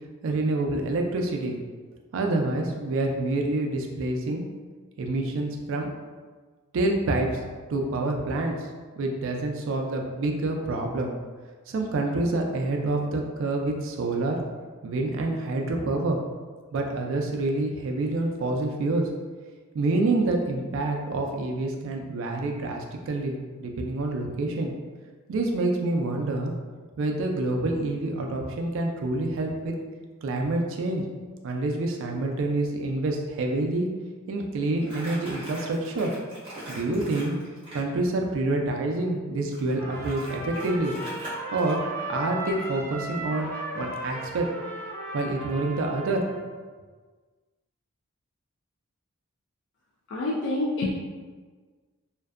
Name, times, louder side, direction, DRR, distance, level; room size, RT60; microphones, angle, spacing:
voice 1, 0.2-1.6 2.1-4.4 5.0-5.9 6.7-7.4 7.7-8.6 9.0-11.1 11.7-14.4 14.8-16.2 16.7-19.1 19.7-24.7 25.3-26.5 27.0-29.7 30.2-31.1 31.4-33.9 34.3-36.1 36.7-37.3 37.7-40.9 41.5-41.8 42.1-44.5 45.1-46.3, right 2 dB, 60° right, 2 dB, 0.3 m, -27 dB
Crumpling crinkling, 34.8-37.9 39.5-41.7, right 1 dB, 25° right, 0.8 m, -41 dB
Trumpet, 39.8-46.5, right 1 dB, 10° left, 0.8 m, -36 dB
voice 2, 50.1-50.9, left 2 dB, 55° left, -4 dB, 0.3 m, -27 dB
2.5 x 2.1 x 2.3 m, 1.4 s
head